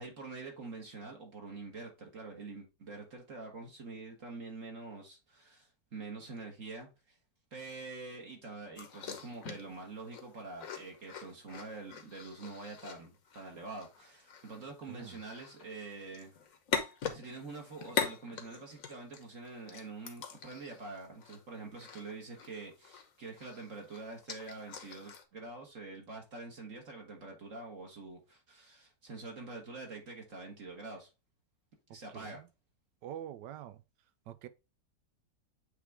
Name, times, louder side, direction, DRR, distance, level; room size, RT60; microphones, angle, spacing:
voice 1, 0.0-7.2 7.5-16.3 16.8-31.1 31.9-32.4, right 3 dB, 50° right, 1.6 m, -46 dB
sound 1, 8.8-23.1 23.4-25.2, left 6 dB, 55° left, 1.2 m, -42 dB
voice 2, 14.9-15.2 32.1-32.5 33.0-33.8 34.3-34.5, right 11 dB, 80° right, 1.2 m, -45 dB
8.2 x 3.3 x 3.4 m
omnidirectional pair, 1.8 m